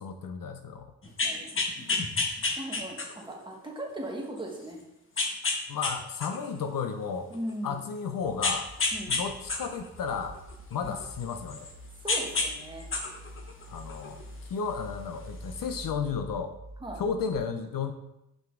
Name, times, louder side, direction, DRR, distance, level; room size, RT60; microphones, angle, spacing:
voice 1, 0.0-0.9 5.7-7.3 7.6-8.7 9.1-10.4 10.7-11.7 13.7-14.2 14.5-16.5 17.0-17.9, left 6 dB, 65° left, 8 dB, 0.6 m, -33 dB
sound 1, 1.0-3.3 3.9-4.0 5.2-5.9 6.2-7.5 8.4-9.2 9.5-11.7 12.1-12.5 12.8-14.2 15.2-15.3, left 3 dB, 35° left, 1.0 m, -29 dB
voice 2, 1.0-1.5 2.6-4.8 7.3-7.9 8.9-9.2 10.8-11.0 12.0-12.9 16.8-17.0, right 1 dB, 15° right, -1 dB, 1.4 m, -38 dB
sound 2, 8.2-17.4, right 1 dB, 40° right, 1.9 m, -47 dB
5.7 x 5.5 x 3.7 m, 0.87 s
cardioid pair, 120°, 37 cm